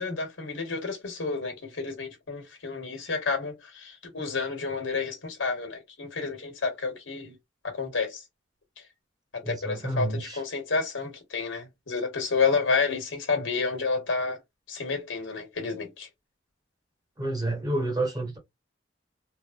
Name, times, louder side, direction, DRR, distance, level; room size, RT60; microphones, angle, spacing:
voice 1, 0.0-7.4 7.6-8.2 8.8-8.9 9.3-14.4 14.7-16.1, left 4 dB, 75° left, 1.2 m, -30 dB
voice 2, 9.4-10.4 17.2-18.4, right 2 dB, 20° right, 1.0 m, -29 dB
3.2 x 2.1 x 2.4 m
head